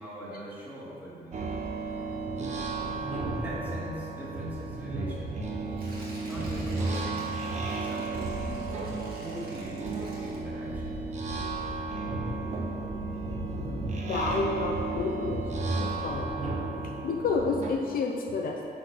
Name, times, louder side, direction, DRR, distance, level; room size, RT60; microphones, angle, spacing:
voice 1, 0.0-1.4 3.3-5.5 6.2-7.3 7.7-8.6 9.2-10.9, equal, 10° right, -9 dB, 2.3 m, -41 dB
sound 1, 1.3-17.7, right 3 dB, 45° right, 1.1 m, -33 dB
Tearing, 5.7-10.9 11.2-11.3, right 1 dB, 60° right, 2.1 m, -47 dB
voice 2, 14.1-15.4 15.8-16.3 17.0-18.7, left 4 dB, 60° left, 1 dB, 0.7 m, -29 dB
9.7 x 4.4 x 6.3 m, 2.7 s
wide cardioid pair, 170°, 17 cm